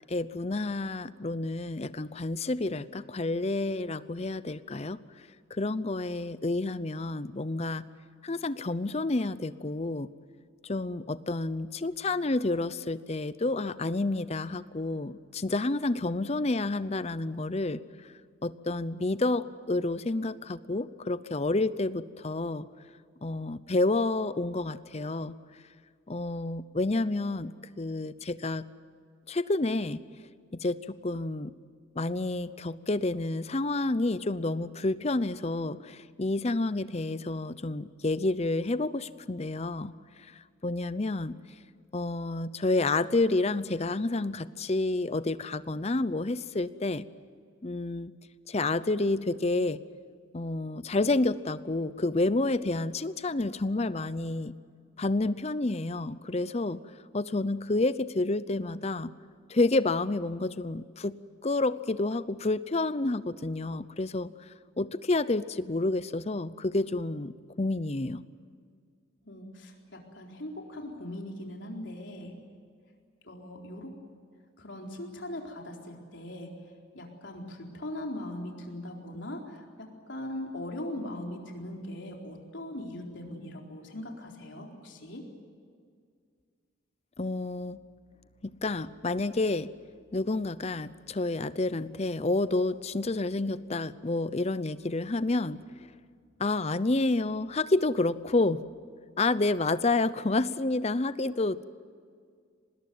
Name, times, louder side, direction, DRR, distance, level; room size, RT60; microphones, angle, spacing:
voice 1, 0.1-7.9 8.2-10.1 10.6-17.8 18.4-22.7 23.2-25.4 26.1-28.7 29.3-30.0 30.5-31.5 32.0-39.9 40.2-41.4 41.9-47.1 47.6-48.1 48.5-49.8 50.3-54.6 55.0-56.8 57.1-59.1 59.5-64.3 64.8-68.2 87.2-87.8 88.4-89.7 90.1-95.9 96.4-98.6 99.2-101.6, left 2 dB, 30° left, 15 dB, 0.7 m, -29 dB
voice 2, 69.2-72.3 73.2-73.9 74.6-76.5 76.9-85.2, left 1 dB, 65° left, 1 dB, 4.2 m, -40 dB
25.5 x 19.5 x 9.4 m, 2.1 s
head